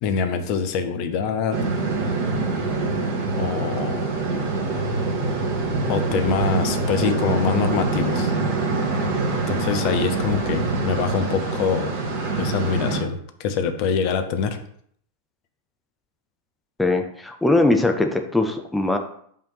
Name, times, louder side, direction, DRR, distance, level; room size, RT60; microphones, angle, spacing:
voice 1, 0.0-1.6 3.4-4.0 5.9-8.3 9.5-11.9 12.3-14.6, left 6 dB, 45° left, 8 dB, 0.7 m, -24 dB
sound 1, 1.5-13.0, right 3 dB, 45° right, 1.6 m, -24 dB
voice 2, 16.8-19.0, left 2 dB, 5° left, 5 dB, 0.6 m, -21 dB
5.5 x 3.4 x 5.6 m, 0.64 s
figure-of-eight pair, 90°, 0 cm